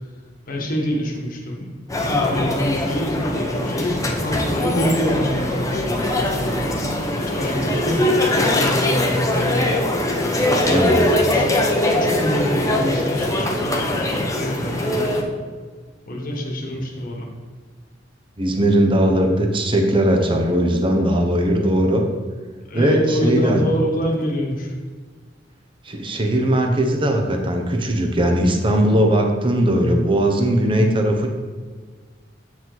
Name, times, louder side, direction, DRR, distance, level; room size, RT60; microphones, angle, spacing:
voice 1, 0.5-6.8 7.2-9.7 10.4-11.5 11.9-15.2 16.1-17.3 22.7-24.7, equal, 50° left, -1 dB, 1.2 m, -26 dB
sound 1, 1.9-15.2, left 1 dB, 15° left, 0.7 m, -21 dB
voice 2, 10.7-11.0 18.4-22.0 22.7-23.6 25.9-31.3, right 1 dB, 30° right, 3 dB, 0.7 m, -19 dB
7.8 x 4.9 x 3.9 m, 1.5 s
head